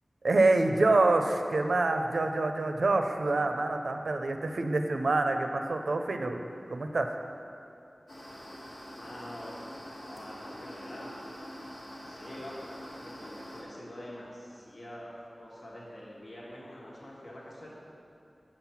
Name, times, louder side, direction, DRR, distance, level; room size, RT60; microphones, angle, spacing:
voice 1, 0.2-6.4 6.7-7.1, right 2 dB, 85° right, 5 dB, 0.5 m, -26 dB
sound 1, 8.1-13.6, equal, 90° left, 1.9 m, -45 dB
voice 2, 9.0-9.5 10.1-11.1 12.0-17.7, left 1 dB, 70° left, -6 dB, 1.5 m, -45 dB
7.6 x 5.8 x 5.8 m, 2.8 s
wide cardioid pair, 55°, 0 cm